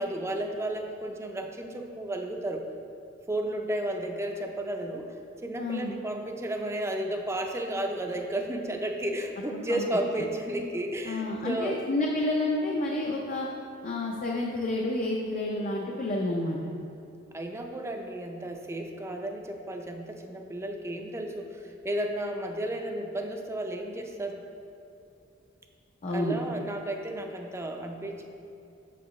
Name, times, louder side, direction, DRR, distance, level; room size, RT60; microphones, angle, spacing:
voice 1, 0.0-2.6 3.3-5.1 5.4-11.8 17.3-24.4 26.1-28.2, right 1 dB, 15° right, 3 dB, 0.5 m, -33 dB
voice 2, 5.6-6.0 9.5-9.8 11.0-13.5 13.8-16.6 26.0-26.4, left 2 dB, 40° left, -1 dB, 0.5 m, -29 dB
6.9 x 6.8 x 3.1 m, 2.7 s
head